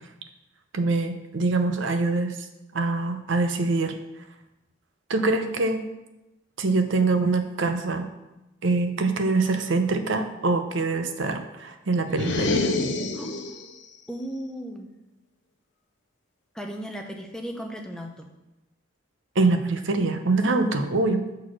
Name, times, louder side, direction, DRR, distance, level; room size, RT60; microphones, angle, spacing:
voice 1, 0.7-2.4 2.7-3.9 5.1-5.9 6.6-8.1 8.6-12.7 19.4-21.2, right 3 dB, 70° right, 7 dB, 0.7 m, -24 dB
sound 1, 12.1-13.7, left 3 dB, 60° left, 0.7 m, -27 dB
voice 2, 13.1-13.5 14.1-14.9 16.5-18.2, equal, 5° left, 2 dB, 0.6 m, -36 dB
6.5 x 4.1 x 6.3 m, 1.0 s
head